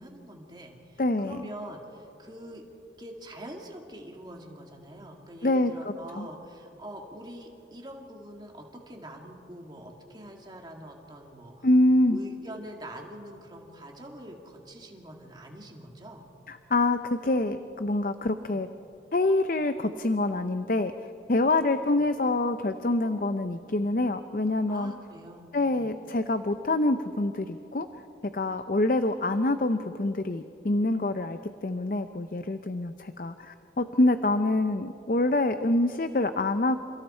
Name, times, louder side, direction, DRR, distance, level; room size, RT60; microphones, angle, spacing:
voice 1, 0.0-2.6 3.0-11.7 12.1-16.3 18.4-18.6 22.0-22.1 24.7-25.9, right 1 dB, 25° right, 1 dB, 2.4 m, -44 dB
voice 2, 1.0-1.3 5.4-6.3 11.6-12.2 16.5-18.7 19.1-20.9 21.3-24.9 25.5-27.9 28.3-36.8, left 2 dB, 50° left, 9 dB, 0.6 m, -26 dB
28.5 x 28.5 x 4.4 m, 2.9 s
head